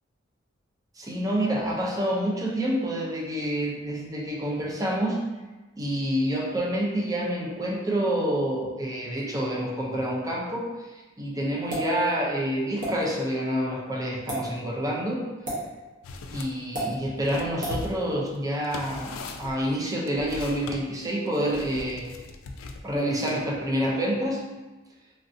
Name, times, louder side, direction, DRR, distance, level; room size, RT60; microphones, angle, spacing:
voice 1, 1.0-5.3 5.8-15.3 16.3-22.0 22.8-24.4, equal, 15° right, -3 dB, 0.4 m, -28 dB
sound 1, 11.7-11.9 12.8-12.9 14.2-14.4 15.4-15.6 16.7-16.9 17.6-17.8, right 1 dB, 45° right, 1.0 m, -30 dB
sound 2, 16.0-16.5 16.9-20.8 21.5-23.0, left 3 dB, 80° left, 0.3 m, -39 dB
3.2 x 2.6 x 2.6 m, 1.2 s
head